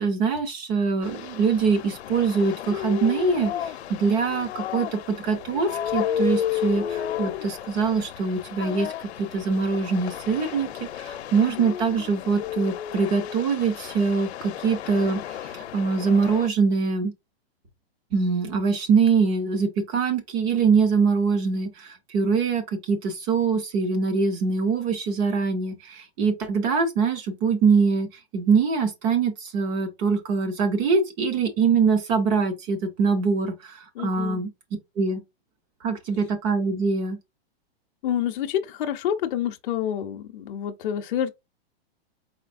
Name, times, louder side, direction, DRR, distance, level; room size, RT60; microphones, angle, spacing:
voice 1, 0.0-8.9 9.2-10.7 11.0-17.1 18.1-34.5 35.0-35.2 35.8-37.2, right 5 dB, 15° right, 0.4 m, -23 dB
sound 1, 1.0-16.5, left 11 dB, 90° left, 0.7 m, -33 dB
voice 2, 11.4-11.7 34.0-34.4 38.0-41.3, left 10 dB, 55° left, 0.6 m, -28 dB
4.2 x 4.0 x 2.5 m
supercardioid pair, 165°, 32 cm